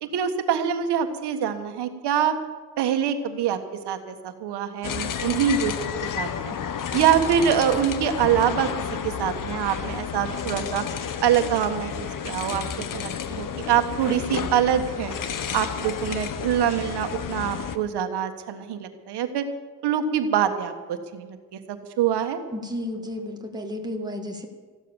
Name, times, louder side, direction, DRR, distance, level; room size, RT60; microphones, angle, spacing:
voice 1, 0.0-2.3 2.8-3.6 3.8-5.7 6.2-6.5 6.9-8.7 9.0-10.8 11.2-15.1 15.5-19.5 19.8-22.4, right 9 dB, 85° right, 7 dB, 1.6 m, -25 dB
sound 1, 4.8-17.8, left 8 dB, 55° left, 1.1 m, -31 dB
voice 2, 22.5-24.5, left 1 dB, 10° right, 3 dB, 1.9 m, -32 dB
14.5 x 12.0 x 7.2 m, 1.5 s
cardioid pair, 125°, 39 cm